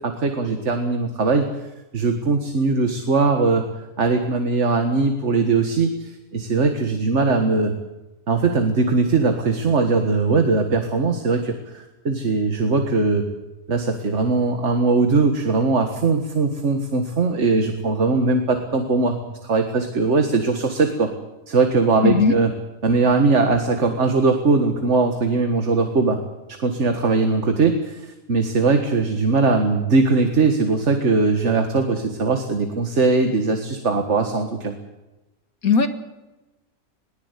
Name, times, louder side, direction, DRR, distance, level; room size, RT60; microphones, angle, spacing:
voice 1, 0.0-1.5 1.9-3.6 4.0-7.7 8.3-13.3 13.7-21.1 21.5-22.5 22.8-26.2 26.6-34.7, right 3 dB, 55° right, 5 dB, 1.9 m, -20 dB
voice 2, 22.0-22.4 35.6-35.9, left 5 dB, 80° left, 8 dB, 2.3 m, -17 dB
21.5 x 19.0 x 8.3 m, 1.0 s
omnidirectional pair, 1.5 m